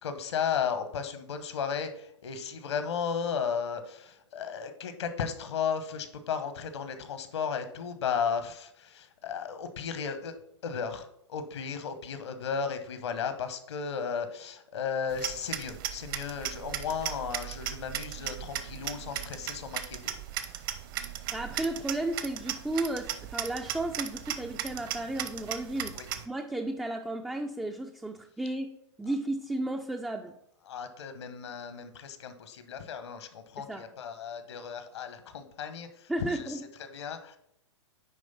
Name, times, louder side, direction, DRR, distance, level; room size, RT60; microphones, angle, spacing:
voice 1, 0.0-10.4 10.6-20.1 25.9-26.1 30.7-37.4, left 6 dB, 65° left, 1.1 m, -35 dB
sound 1, 15.1-26.3, right 11 dB, 50° right, 0.8 m, -37 dB
voice 2, 21.3-30.3 33.6-33.8 36.1-36.7, right 1 dB, 5° right, 0.3 m, -34 dB
9.4 x 3.2 x 5.6 m
figure-of-eight pair, 115°, 15 cm